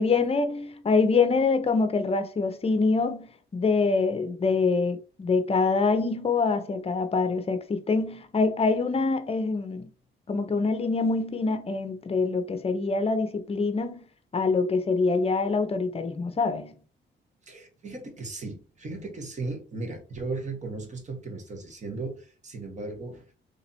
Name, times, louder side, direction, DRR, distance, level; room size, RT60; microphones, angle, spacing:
voice 1, 0.0-9.8 10.3-14.1 14.3-16.8, left 4 dB, 30° left, 0.7 m, -25 dB
voice 2, 17.4-23.2, right 3 dB, 35° right, 1.5 m, -36 dB
3.4 x 2.9 x 4.2 m
cardioid pair, 90°, 20 cm